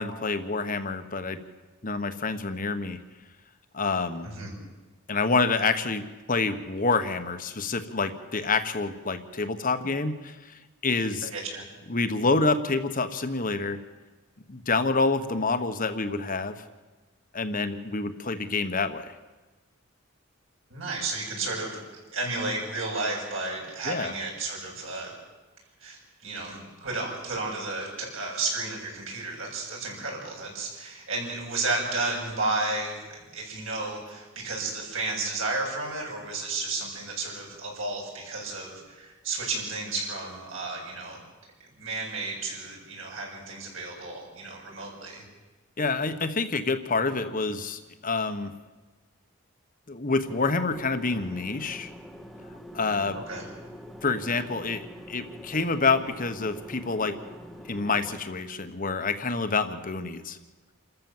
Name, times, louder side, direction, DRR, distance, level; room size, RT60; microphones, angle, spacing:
voice 1, 0.0-1.4 1.8-3.0 3.7-4.3 5.1-11.3 11.9-13.8 14.5-16.5 17.3-19.1 23.8-24.1 45.8-48.5 49.9-51.9 52.7-53.2 54.0-54.8 55.1-57.2 57.7-60.4, left 3 dB, 40° left, 10 dB, 1.3 m, -27 dB
voice 2, 4.2-4.5 11.2-11.6 20.7-21.8 22.1-25.1 25.8-41.2 41.8-45.2 53.1-53.4, right 3 dB, 70° right, -1 dB, 7.4 m, -32 dB
sound 1, 50.2-58.2, equal, ahead, 1.2 m, -44 dB
28.5 x 14.0 x 7.4 m, 1.2 s
head